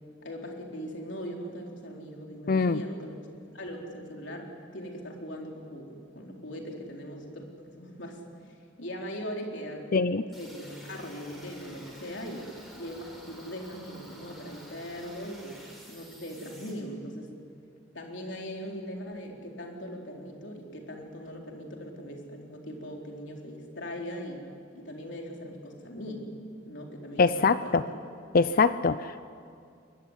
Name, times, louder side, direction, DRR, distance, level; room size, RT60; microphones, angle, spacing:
voice 1, 0.2-8.2 8.5-12.5 12.8-15.6 15.9-17.3 17.9-24.4 24.7-26.3 26.6-28.0, equal, 65° left, 1 dB, 4.1 m, -40 dB
voice 2, 2.5-2.8 9.9-10.2 27.2-27.8 28.3-29.2, left 4 dB, 50° left, 13 dB, 0.5 m, -23 dB
sound 1, 10.3-16.7, equal, ahead, 7.0 m, -50 dB
22.5 x 22.5 x 10.0 m, 2.3 s
head